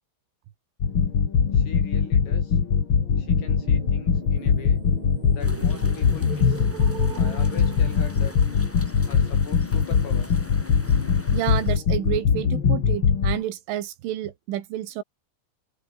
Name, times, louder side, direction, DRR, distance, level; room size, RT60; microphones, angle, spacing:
sound 1, 0.8-13.4, left 6 dB, 55° left, 1.4 m, -21 dB
voice 1, 1.5-2.6 3.2-4.8 5.3-6.7 7.2-8.4 9.1-10.3, left 5 dB, 85° left, 10.5 m, -41 dB
sound 2, 3.0-8.9, right 9 dB, 50° right, 3.5 m, -40 dB
sound 3, 5.4-11.8, equal, ahead, 6.1 m, -42 dB
voice 2, 11.3-15.0, right 12 dB, 75° right, 4.3 m, -30 dB
omnidirectional pair, 5.8 m